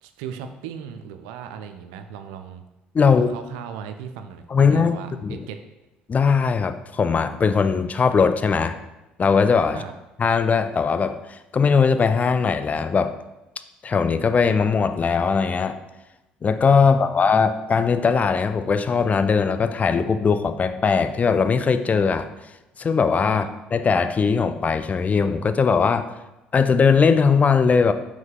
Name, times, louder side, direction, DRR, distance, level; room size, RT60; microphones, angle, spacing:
voice 1, 0.0-2.6 3.0-5.6 9.7-9.9 16.8-17.5 23.3-23.5, right 8 dB, 75° right, 7 dB, 0.3 m, -37 dB
voice 2, 2.9-3.3 4.5-5.0 5.2-5.4 6.1-8.8 9.2-9.8 10.2-13.2 13.8-15.8 16.4-22.3 22.8-26.1 26.5-27.9, left 5 dB, 30° left, 9 dB, 0.3 m, -20 dB
3.9 x 3.0 x 3.6 m, 0.99 s
hypercardioid pair, 60°, 5 cm